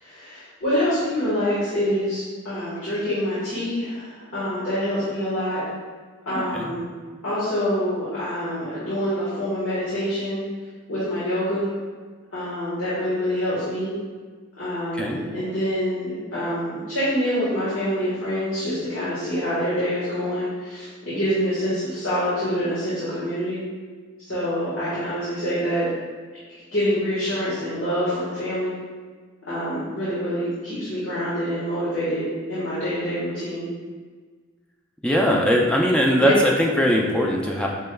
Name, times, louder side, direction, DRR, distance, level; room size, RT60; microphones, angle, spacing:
voice 1, 0.0-5.6 6.2-6.9 7.2-10.4 10.9-11.7 12.3-13.9 14.6-23.6 24.2-25.8 26.5-28.7 29.5-33.7 36.2-36.4, equal, 85° left, -12 dB, 1.4 m, -26 dB
voice 2, 35.0-37.7, equal, 5° left, -2 dB, 0.3 m, -20 dB
5.4 x 3.3 x 2.2 m, 1.5 s
head